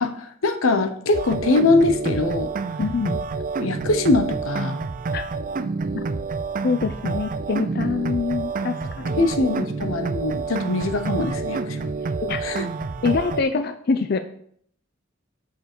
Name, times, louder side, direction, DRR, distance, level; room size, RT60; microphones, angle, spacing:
voice 1, 0.0-2.5 3.6-4.8 9.2-11.9 12.4-12.7, left 2 dB, 85° left, 9 dB, 0.9 m, -22 dB
sound 1, 1.1-13.4, right 4 dB, 40° right, 0.4 m, -28 dB
voice 2, 2.8-3.2 5.1-5.3 5.9-6.1 6.6-9.5 12.2-12.4 13.0-14.2, left 4 dB, 50° left, 9 dB, 0.5 m, -25 dB
6.7 x 5.3 x 6.0 m, 0.64 s
head